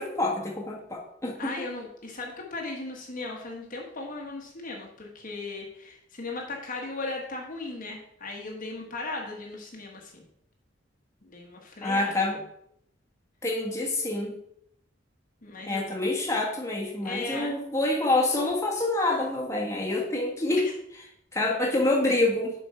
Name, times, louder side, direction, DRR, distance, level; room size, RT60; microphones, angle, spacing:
voice 1, 0.0-1.5 11.8-12.4 13.4-14.3 15.7-20.7 21.3-22.5, left 2 dB, 15° left, -2 dB, 1.6 m, -27 dB
voice 2, 1.4-10.2 11.2-12.1 15.4-15.9 17.0-17.5 20.6-20.7 21.5-21.6, left 3 dB, 45° left, 0 dB, 1.3 m, -37 dB
7.2 x 5.4 x 4.5 m, 0.71 s
head